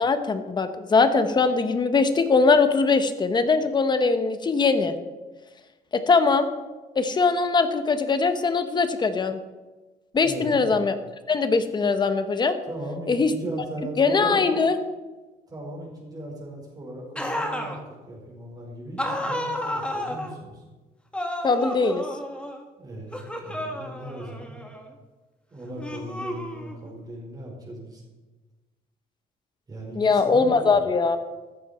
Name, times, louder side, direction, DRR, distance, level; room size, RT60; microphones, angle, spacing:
voice 1, 0.0-4.9 5.9-6.5 7.0-9.4 10.1-11.0 11.3-12.6 13.1-13.3 14.0-14.8 21.4-22.1 30.0-31.2, left 4 dB, 25° left, 9 dB, 1.1 m, -21 dB
voice 2, 10.2-10.8 12.7-14.4 15.5-20.6 22.8-24.6 25.5-28.0 29.7-30.8, right 1 dB, 20° right, -1 dB, 4.8 m, -37 dB
sound 1, 17.2-17.8 19.0-20.3 21.1-22.6 23.1-24.9 25.8-26.9, left 1 dB, 5° left, 1.6 m, -32 dB
14.0 x 14.0 x 4.3 m, 1.2 s
cardioid pair, 160°, 17 cm